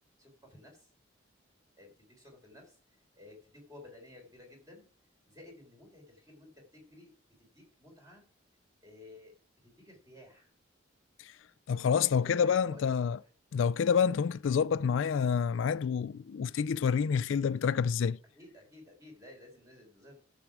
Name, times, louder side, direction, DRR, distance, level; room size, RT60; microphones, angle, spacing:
voice 1, 0.2-0.9 1.8-2.8 3.2-4.9 5.3-7.1 7.5-8.2 8.8-9.3 9.8-10.5 12.2-13.1 18.3-20.2, left 1 dB, 15° right, 3.9 m, -54 dB
voice 2, 11.7-13.2 13.5-18.2, left 6 dB, 75° left, 0.3 m, -28 dB
10.5 x 7.3 x 4.8 m
head